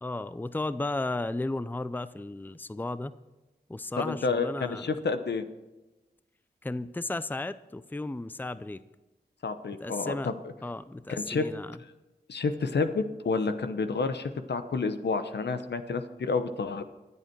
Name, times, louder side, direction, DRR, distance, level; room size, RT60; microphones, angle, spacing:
voice 1, 0.0-3.1 3.7-4.9 6.6-8.8 9.8-10.3 10.6-11.8, left 2 dB, 10° left, 14 dB, 0.5 m, -34 dB
voice 2, 4.0-5.4 9.4-10.3 11.1-11.5 12.3-16.8, left 4 dB, 85° left, 9 dB, 0.9 m, -29 dB
24.0 x 8.2 x 4.6 m, 1.1 s
wide cardioid pair, 60°, 17 cm